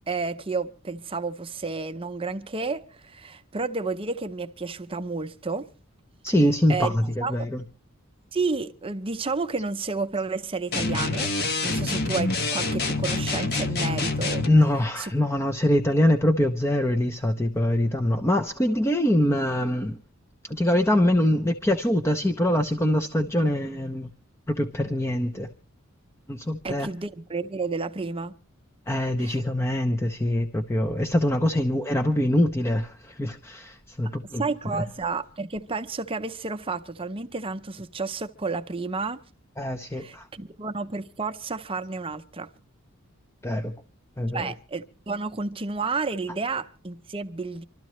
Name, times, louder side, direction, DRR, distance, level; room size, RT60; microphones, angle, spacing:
voice 1, 0.1-5.7 6.7-7.5 8.3-11.3 11.6-14.5 15.0-15.1 26.6-28.3 29.2-29.4 34.0-34.1 34.4-39.2 39.9-42.5 44.3-47.6, right 4 dB, 25° right, 0.7 m, -31 dB
voice 2, 6.2-7.6 14.4-20.0 20.4-24.1 24.5-25.5 26.3-26.9 28.9-34.8 39.6-40.3 43.4-43.7 44.2-44.5, left 1 dB, 10° left, 0.7 m, -24 dB
sound 1, 10.7-14.6, left 3 dB, 50° left, 1.4 m, -26 dB
25.5 x 13.0 x 3.1 m
head